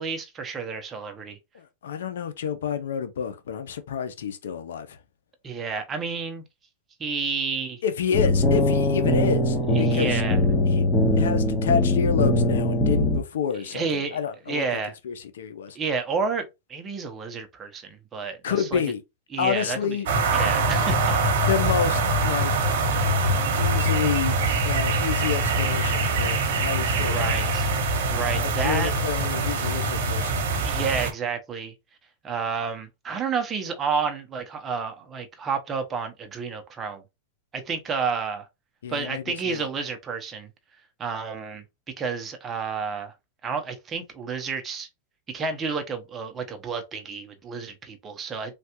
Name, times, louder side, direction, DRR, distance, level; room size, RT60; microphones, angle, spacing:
voice 1, 0.0-1.4 5.4-6.4 7.0-7.8 9.7-10.4 13.7-14.2 14.5-14.9 15.7-18.8 19.3-20.0 20.3-21.5 26.9-27.7 28.1-28.9 30.6-31.7 32.2-37.0 37.5-38.5 38.9-40.5 41.0-41.6 42.0-43.1 43.4-44.9 45.3-48.6, right 5 dB, 20° right, 0.7 m, -30 dB
voice 2, 1.5-5.0 7.8-10.2 10.7-15.8 18.4-19.0 19.4-20.1 21.4-22.6 23.6-24.4 24.7-27.3 28.4-30.4 38.8-39.7, left 7 dB, 85° left, 0.6 m, -29 dB
sound 1, 8.1-13.2, left 1 dB, 20° left, 1.0 m, -21 dB
sound 2, 20.1-31.1, right 2 dB, 70° right, 0.9 m, -23 dB
3.3 x 2.4 x 2.9 m
supercardioid pair, 135°, 0 cm